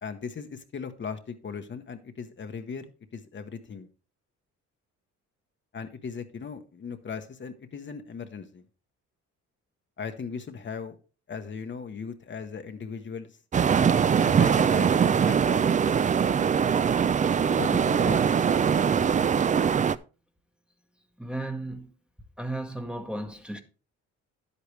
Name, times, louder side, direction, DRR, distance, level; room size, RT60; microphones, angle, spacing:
voice 1, 0.0-3.9 5.7-8.6 10.0-11.0 11.3-13.4 14.2-15.7 17.5-18.3, left 6 dB, 40° left, 0.9 m, -38 dB
sound 1, 13.5-20.0, right 7 dB, 25° right, 0.4 m, -22 dB
voice 2, 21.2-21.9 22.4-23.6, right 2 dB, 5° right, 1.0 m, -34 dB
10.0 x 8.3 x 3.2 m
cardioid pair, 90°, 30 cm